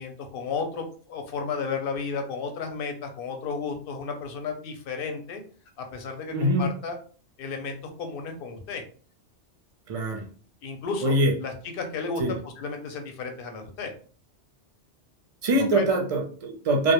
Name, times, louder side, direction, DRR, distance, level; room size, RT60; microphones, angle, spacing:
voice 1, 0.0-5.4 5.8-7.0 7.4-8.8 10.6-13.9 15.7-15.9, left 5 dB, 60° left, 4 dB, 0.7 m, -33 dB
voice 2, 6.3-6.7 9.9-10.2 11.0-11.3 12.2-12.3 15.4-16.9, right 1 dB, 55° right, 2 dB, 0.4 m, -23 dB
2.1 x 2.0 x 2.9 m, 0.42 s
omnidirectional pair, 1.2 m